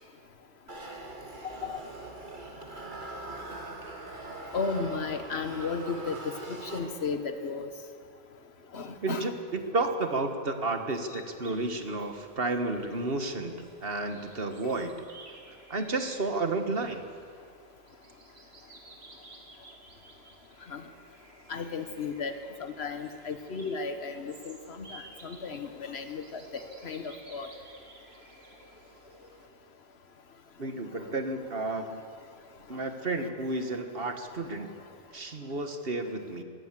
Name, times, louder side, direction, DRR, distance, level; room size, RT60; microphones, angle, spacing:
sound 1, 0.7-7.3, right 2 dB, 50° right, 2.3 m, -42 dB
voice 1, 1.4-1.8 4.5-7.7 8.7-9.2 11.1-11.2 14.6-14.8 20.7-20.8 21.5-22.3 22.6-27.5, left 4 dB, 85° left, 8 dB, 1.5 m, -34 dB
voice 2, 9.0-14.9 15.7-17.0 30.6-32.0 32.7-34.8 35.1-36.4, right 2 dB, 65° right, 7 dB, 1.8 m, -32 dB
sound 2, 11.4-29.5, right 2 dB, 80° right, 2.5 m, -54 dB
22.0 x 17.5 x 7.6 m, 2.2 s
omnidirectional pair, 1.0 m